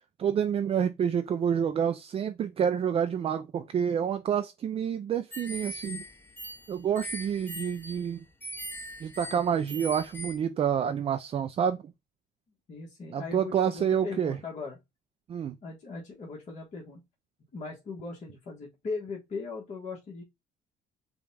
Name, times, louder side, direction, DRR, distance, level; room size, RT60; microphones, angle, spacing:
voice 1, 0.2-6.0 6.7-8.2 9.0-11.8 13.1-14.4 15.3-15.6, right 8 dB, 35° right, 0.4 m, -28 dB
sound 1, 5.3-10.4, equal, 10° left, 0.8 m, -41 dB
voice 2, 12.7-14.8 15.6-17.0 17.5-20.2, left 4 dB, 45° left, 1.5 m, -39 dB
5.2 x 2.4 x 3.3 m
cardioid pair, 110°, 17 cm